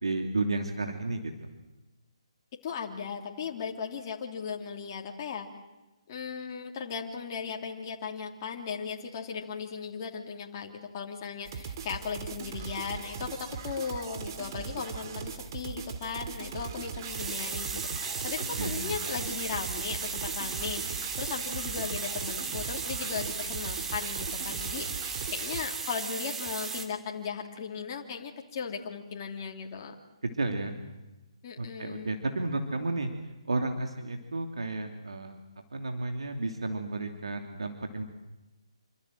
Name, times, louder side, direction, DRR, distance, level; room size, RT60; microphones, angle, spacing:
voice 1, 0.0-1.3 18.6-18.9 30.4-30.7 31.6-33.1 33.5-35.4 35.7-38.0, right 2 dB, 65° right, 5 dB, 2.9 m, -32 dB
voice 2, 2.6-5.5 6.1-24.9 25.3-30.0 31.4-32.1, left 6 dB, 35° left, 1 dB, 3.2 m, -37 dB
sound 1, 11.4-25.7, right 6 dB, 35° right, 2.8 m, -39 dB
sound 2, 17.0-26.8, right 4 dB, 10° right, 2.4 m, -36 dB
27.5 x 25.5 x 7.7 m, 1.1 s
figure-of-eight pair, 140°, 3 cm